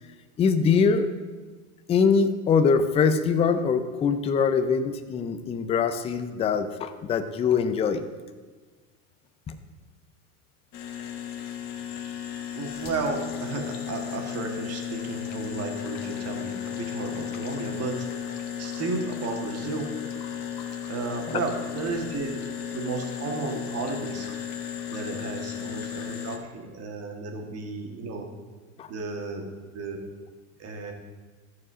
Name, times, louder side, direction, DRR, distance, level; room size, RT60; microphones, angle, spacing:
voice 1, 0.4-1.1 1.9-8.0 9.5-9.6 28.8-28.9, left 5 dB, 15° left, 9 dB, 0.4 m, -23 dB
sound 1, 10.7-26.4, left 9 dB, 45° left, 1.3 m, -35 dB
voice 2, 12.5-19.9 20.9-22.4 22.7-24.3 24.9-28.2 28.9-29.5 29.7-30.0 30.6-30.9, right 3 dB, 35° right, 3 dB, 1.7 m, -33 dB
12.5 x 4.7 x 6.1 m, 1.4 s
supercardioid pair, 125°, 44 cm